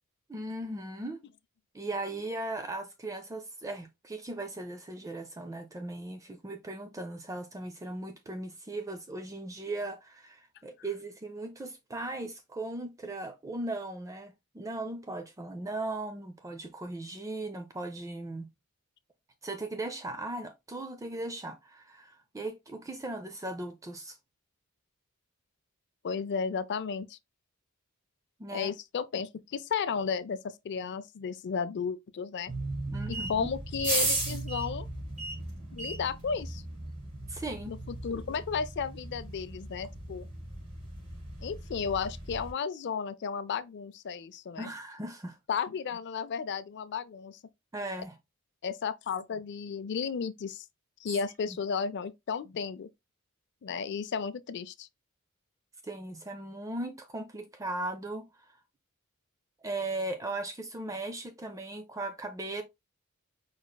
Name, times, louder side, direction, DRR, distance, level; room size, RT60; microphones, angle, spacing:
voice 1, 0.3-1.2 1.7-18.5 19.4-24.2 28.4-28.7 32.9-33.5 37.3-37.7 44.6-45.4 47.7-48.2 51.5-51.6 55.8-58.5 59.6-62.6, right 2 dB, 15° right, 0.4 m, -38 dB
voice 2, 26.0-27.2 28.5-32.5 33.1-34.9 35.7-36.6 37.7-37.8 38.0-40.3 41.4-44.7 45.5-47.4 48.6-50.6 51.0-52.9 53.6-54.9, left 6 dB, 55° left, 0.4 m, -33 dB
sound 1, 32.5-42.5, right 2 dB, 40° right, 3.1 m, -36 dB
5.0 x 4.1 x 2.2 m
head